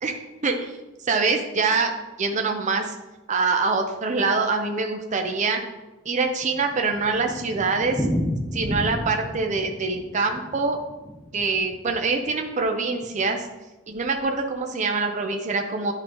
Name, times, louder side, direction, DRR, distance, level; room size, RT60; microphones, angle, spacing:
voice 1, 1.0-1.9 2.2-3.0 3.3-5.6 6.1-8.1 8.5-10.8 11.3-13.4 13.9-15.9, right 4 dB, 40° right, 4 dB, 0.6 m, -24 dB
Thunder, 6.1-12.4 12.6-12.7 13.0-13.1 13.3-13.4 14.0-14.3, equal, 5° left, 0.9 m, -32 dB
10.5 x 3.8 x 3.0 m, 1.0 s
head